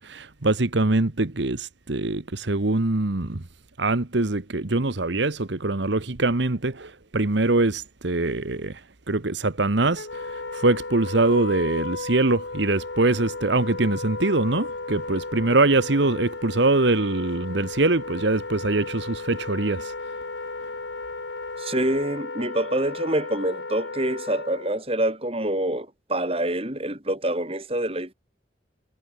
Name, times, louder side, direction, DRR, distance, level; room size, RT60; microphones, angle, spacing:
voice 1, 0.0-3.4 3.8-19.9, right 2 dB, 70° right, 1.3 m, -23 dB
Wind instrument woodwind instrument, 10.0-24.8, left 3 dB, 70° left, 1.5 m, -34 dB
voice 2, 21.6-28.1, right 1 dB, 30° right, 3.3 m, -26 dB
head